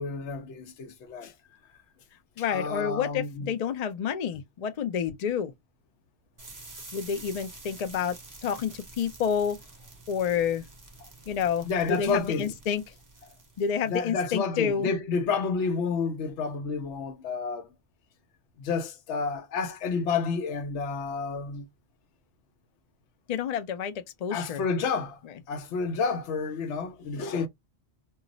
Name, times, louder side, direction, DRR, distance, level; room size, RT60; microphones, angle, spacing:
voice 1, 0.0-1.3 2.5-3.5 11.6-12.5 13.8-17.7 18.6-21.7 24.3-25.2 25.5-27.5, left 4 dB, 80° left, 0.9 m, -30 dB
voice 2, 2.4-5.5 6.9-8.2 8.4-9.6 10.1-10.7 11.3-12.8 13.6-14.9 23.3-23.9 24.2-24.6, left 7 dB, 55° left, 0.4 m, -29 dB
sound 1, 6.4-14.3, right 2 dB, 25° right, 0.5 m, -48 dB
2.3 x 2.0 x 3.7 m
omnidirectional pair, 1.2 m